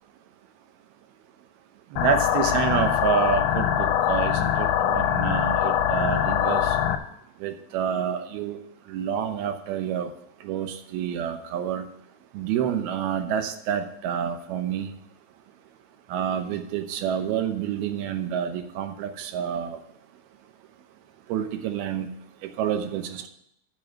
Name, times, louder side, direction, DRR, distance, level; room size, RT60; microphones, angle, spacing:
voice 1, 1.9-6.8 7.4-8.6 8.9-10.1 10.4-11.9 12.3-14.9 16.1-19.8 21.3-22.1 22.6-23.3, right 8 dB, 75° right, 7 dB, 2.6 m, -28 dB
sound 1, 2.0-7.0, left 10 dB, 75° left, 2.5 m, -23 dB
7.8 x 7.3 x 7.2 m, 0.76 s
omnidirectional pair, 4.8 m